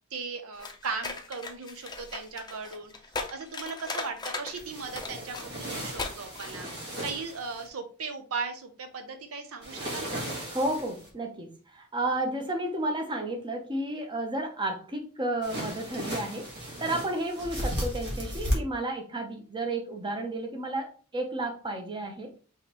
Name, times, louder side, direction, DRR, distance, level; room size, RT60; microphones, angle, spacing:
voice 1, 0.1-6.7 7.0-10.2, right 4 dB, 65° right, 6 dB, 0.7 m, -37 dB
sound 1, 0.6-4.6 4.9-5.5 6.0-6.1 6.4-6.6, left 3 dB, 20° left, 0.6 m, -37 dB
sound 2, 4.6-7.7 9.6-11.1 15.4-18.5, equal, 50° right, 1.5 m, -35 dB
voice 2, 10.5-16.5 16.8-22.3, right 1 dB, 20° right, 3 dB, 0.8 m, -32 dB
5.6 x 3.1 x 2.9 m, 0.38 s
head